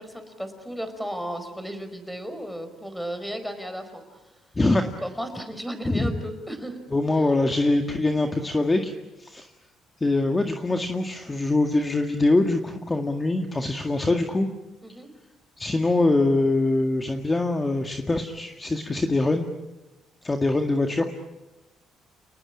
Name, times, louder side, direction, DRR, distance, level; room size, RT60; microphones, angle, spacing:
voice 1, 0.0-4.0 5.0-6.8 14.8-15.1, equal, ahead, 8 dB, 4.9 m, -34 dB
voice 2, 4.6-4.9 5.9-6.1 6.9-8.9 9.2-9.5 10.0-14.5 15.6-19.5 20.2-21.1, left 2 dB, 20° left, 4 dB, 1.9 m, -23 dB
29.0 x 20.0 x 8.8 m, 1.0 s
cardioid pair, 90°, 0 cm